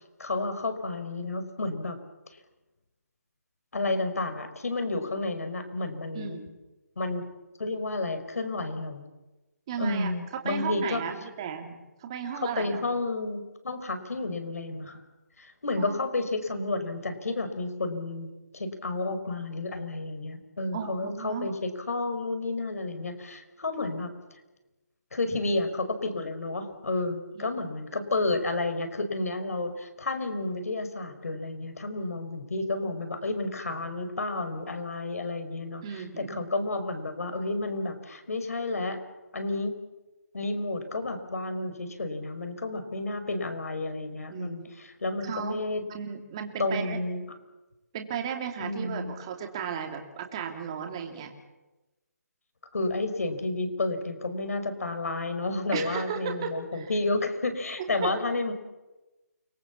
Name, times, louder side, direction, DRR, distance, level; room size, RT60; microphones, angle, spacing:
voice 1, 0.2-2.0 3.7-6.4 7.0-7.2 7.6-9.0 9.8-11.0 12.4-15.0 15.4-24.1 25.1-39.0 39.3-39.7 40.3-45.8 46.6-47.2 48.6-49.1 52.7-58.5, left 2 dB, 60° left, 8 dB, 5.3 m, -31 dB
voice 2, 6.1-6.5 9.7-10.1 10.4-12.8 15.8-16.0 20.7-21.5 27.3-27.5 35.8-36.4 44.3-44.7 45.2-45.6 45.9-47.0 47.9-51.3 55.7-56.9 58.0-58.1, right 7 dB, 20° right, 4 dB, 2.6 m, -35 dB
29.5 x 21.0 x 7.3 m, 1.1 s
hypercardioid pair, 175°, 9 cm